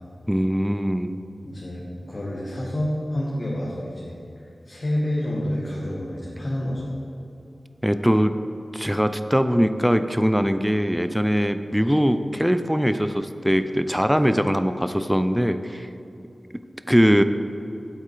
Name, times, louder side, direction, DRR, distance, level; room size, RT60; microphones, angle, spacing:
voice 1, 0.3-1.2 7.8-8.4 8.7-15.9 16.9-17.2, equal, 5° right, 10 dB, 0.4 m, -21 dB
voice 2, 1.4-4.2 4.6-6.9, left 1 dB, 45° left, -6 dB, 1.5 m, -28 dB
8.2 x 8.1 x 4.6 m, 2.7 s
wide cardioid pair, 80°, 0 cm